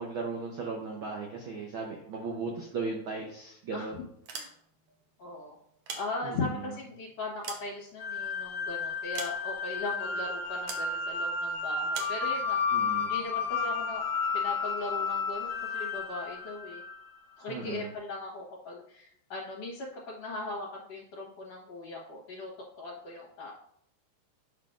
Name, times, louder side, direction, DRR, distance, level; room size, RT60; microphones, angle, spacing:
voice 1, 0.0-4.0 6.2-6.4 12.7-13.1 17.5-17.9, right 4 dB, 80° right, 0 dB, 1.1 m, -36 dB
sound 1, 4.1-4.9 5.6-6.6 7.1-8.4 9.1-9.8 10.7-10.9 11.9-12.2, right 5 dB, 65° right, 1.7 m, -42 dB
voice 2, 5.2-5.6 6.0-12.6 13.0-14.0 14.3-16.8 17.4-22.5 22.8-23.5, left 3 dB, 65° left, -5 dB, 2.2 m, -38 dB
sound 2, 8.0-17.2, left 4 dB, 85° left, 2.0 m, -32 dB
8.5 x 5.8 x 2.5 m, 0.68 s
omnidirectional pair, 3.3 m